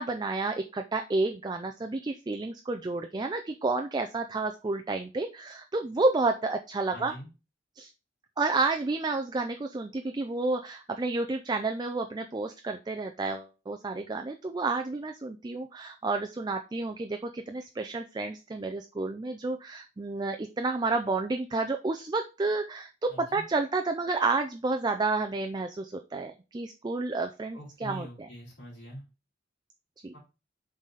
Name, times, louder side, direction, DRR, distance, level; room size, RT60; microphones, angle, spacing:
voice 1, 0.0-7.1 7.8-7.9 8.4-28.3 30.0-30.1, right 3 dB, 20° right, 5 dB, 0.4 m, -30 dB
voice 2, 6.9-7.3 23.1-23.4 27.5-29.0 30.1-30.2, equal, 70° left, -5 dB, 3.3 m, -43 dB
7.2 x 4.0 x 3.9 m, 0.31 s
head